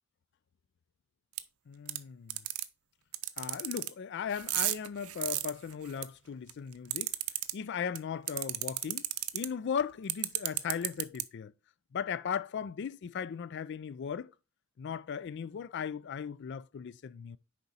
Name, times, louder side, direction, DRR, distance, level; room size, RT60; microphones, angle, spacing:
sound 1, 1.4-1.5 1.9-2.0 2.3-2.6 3.1-3.9 4.3-6.0 6.5-7.5 7.9-8.0 8.3-9.4 10.1-11.2, right 17 dB, 80° right, 0.6 m, -32 dB
voice 1, 1.7-2.4 3.4-7.1 7.5-9.1 9.3-11.5 11.9-14.3 14.8-17.4, left 7 dB, 50° left, 0.3 m, -37 dB
6.7 x 4.8 x 4.2 m
head